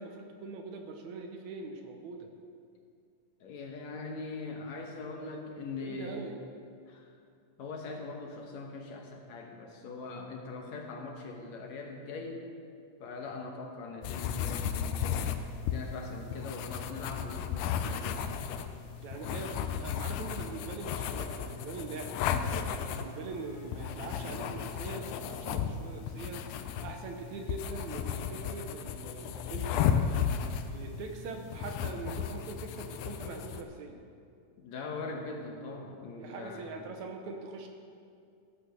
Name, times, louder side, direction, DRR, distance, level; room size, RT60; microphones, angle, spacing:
voice 1, 0.0-2.3 5.2-5.4 5.8-6.4 19.0-22.2 22.6-34.0 36.2-37.7, right 4 dB, 70° right, 3 dB, 2.2 m, -42 dB
voice 2, 3.4-6.2 6.9-7.1 7.6-12.5 13.0-15.3 15.6-18.3 26.6-26.9 34.6-36.9, left 3 dB, 65° left, 1 dB, 2.2 m, -41 dB
sound 1, 14.0-33.6, left 8 dB, 80° left, 2.2 m, -34 dB
sound 2, 20.5-25.1, equal, 15° left, 1.8 m, -55 dB
13.5 x 8.6 x 6.5 m, 2.4 s
omnidirectional pair, 3.7 m